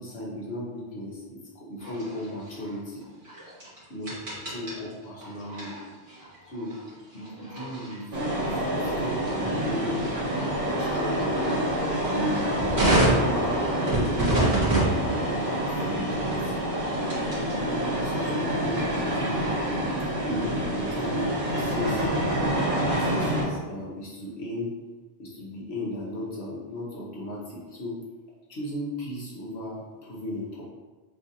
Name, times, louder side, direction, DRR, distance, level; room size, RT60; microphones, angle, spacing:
voice 1, 0.0-3.1 3.9-5.8 6.4-6.8 7.1-11.4 12.1-14.3 14.7-16.6 17.6-19.8 20.3-22.1 22.9-24.8 25.2-28.0 28.5-30.6, left 1 dB, 75° left, -5 dB, 1.2 m, -36 dB
sound 1, 1.8-17.6 17.9-20.1, right 1 dB, 70° right, 1.9 m, -31 dB
sound 2, 8.1-23.4, right 1 dB, 40° right, 1.2 m, -27 dB
6.8 x 2.5 x 2.8 m, 1.3 s
omnidirectional pair, 1.1 m